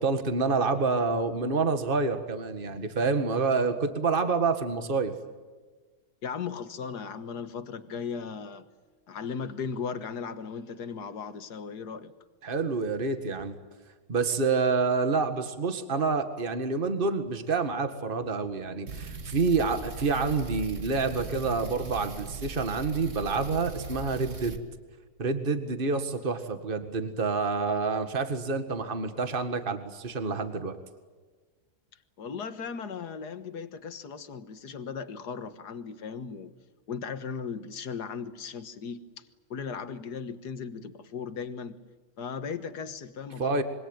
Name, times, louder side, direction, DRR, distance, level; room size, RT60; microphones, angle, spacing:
voice 1, 0.0-5.1 12.4-13.6 14.1-24.6 25.2-30.8 43.4-43.6, right 4 dB, 35° right, 9 dB, 2.0 m, -28 dB
voice 2, 6.2-8.7 9.1-12.1 32.2-36.5 36.9-41.8 42.2-43.6, left 6 dB, 85° left, 11 dB, 2.0 m, -37 dB
sound 1, 18.9-24.6, right 4 dB, 50° right, 2.4 m, -39 dB
26.5 x 23.5 x 9.0 m, 1.4 s
omnidirectional pair, 1.7 m